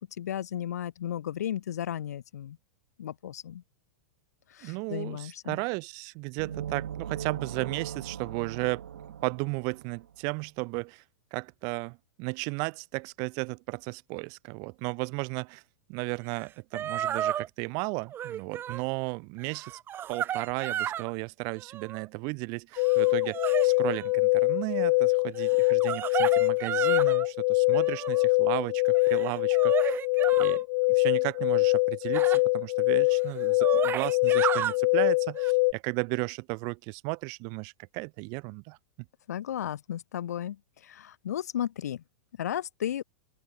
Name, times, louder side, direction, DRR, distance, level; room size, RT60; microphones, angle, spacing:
voice 1, 0.2-2.6 3.0-3.6 4.5-5.6 39.3-42.0 42.4-43.0, left 10 dB, 80° left, 1.8 m, -34 dB
voice 2, 4.6-8.8 9.2-11.0 11.3-15.6 15.9-19.7 20.1-30.0 30.4-38.8, right 34 dB, 45° right, 0.6 m, -34 dB
sound 1, 6.4-10.2, right 9 dB, 90° right, 2.8 m, -39 dB
sound 2, 16.4-16.5 16.7-17.5 18.1-18.8 19.4-21.1 21.6-22.0 22.7-24.1 25.5-27.3 27.7-28.3 28.9-30.6 32.1-32.4 33.1-33.2 33.4-34.7 35.3-35.5, right 10 dB, 25° right, 1.3 m, -33 dB
sound 3, 22.8-35.7, left 26 dB, 50° left, 0.6 m, -24 dB
open air
hypercardioid pair, 130°, 9 cm